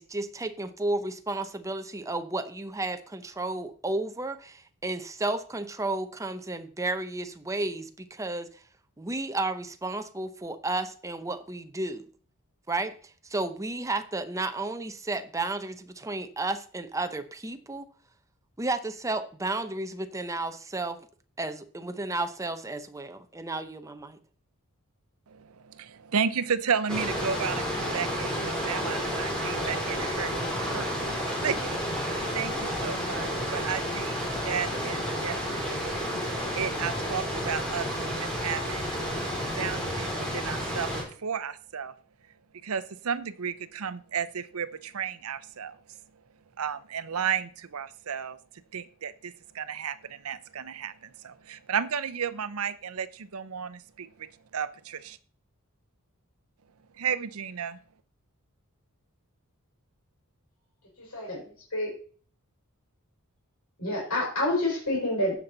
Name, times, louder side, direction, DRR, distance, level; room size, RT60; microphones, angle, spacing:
voice 1, 0.0-8.5 9.0-12.1 12.7-13.0 13.3-17.9 18.6-21.0 21.4-24.2, right 2 dB, 15° right, 9 dB, 0.7 m, -32 dB
voice 2, 25.8-30.3 30.7-30.9 31.4-31.8 32.0-34.2 34.4-36.0 36.6-38.8 39.6-40.1 40.3-40.9 41.2-41.9 42.6-45.7 46.6-48.4 48.7-50.9 51.2-54.1 54.5-55.2 57.0-57.8, right 7 dB, 70° right, 14 dB, 0.7 m, -33 dB
sound 1, 26.9-41.0, equal, 5° left, 3.4 m, -31 dB
voice 3, 61.0-61.9 63.8-65.3, left 1 dB, 70° left, -4 dB, 4.6 m, -28 dB
15.5 x 5.8 x 4.0 m, 0.43 s
head